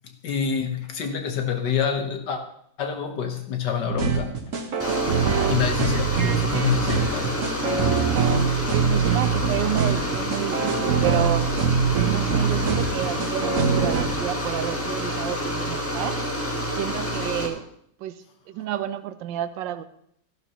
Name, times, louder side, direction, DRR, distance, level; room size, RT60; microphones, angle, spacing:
voice 1, 0.2-2.4 2.8-4.4 5.5-7.4 7.9-8.0 10.6-10.7, left 7 dB, 65° left, 5 dB, 1.9 m, -27 dB
sound 1, 3.9-14.0, right 6 dB, 45° right, 1.3 m, -23 dB
sound 2, 4.8-17.5, equal, 10° left, 1.2 m, -28 dB
voice 2, 8.7-11.5 11.9-16.2 16.7-17.6 18.0-19.9, right 12 dB, 75° right, 12 dB, 1.3 m, -30 dB
14.0 x 11.5 x 3.1 m, 0.70 s
omnidirectional pair, 2.1 m